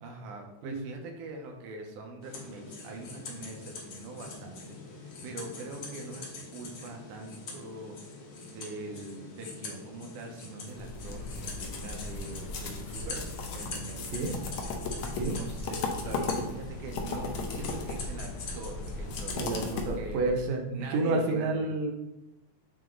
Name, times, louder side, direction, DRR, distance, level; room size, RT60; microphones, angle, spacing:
voice 1, 0.0-8.0 8.4-13.2 13.5-14.1 15.1-20.2 20.7-21.7, right 3 dB, 90° right, 2 dB, 2.4 m, -43 dB
sound 1, 2.2-19.5, left 3 dB, 60° left, 1.2 m, -44 dB
sound 2, 10.7-20.4, left 3 dB, 85° left, 1.2 m, -36 dB
voice 2, 19.4-21.9, right 2 dB, 70° right, 3 dB, 1.8 m, -30 dB
8.5 x 3.0 x 3.7 m, 0.93 s
omnidirectional pair, 3.5 m